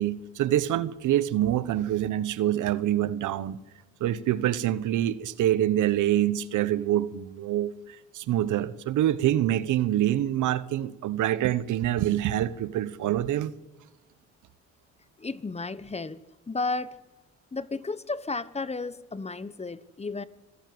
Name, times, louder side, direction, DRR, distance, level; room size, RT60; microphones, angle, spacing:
voice 1, 0.0-3.6 4.0-13.5, right 12 dB, 80° right, 1.2 m, -26 dB
voice 2, 15.2-16.2 16.5-17.0 17.5-20.2, left 3 dB, 20° left, 1.1 m, -33 dB
26.0 x 14.5 x 8.0 m
cardioid pair, 90°, 30 cm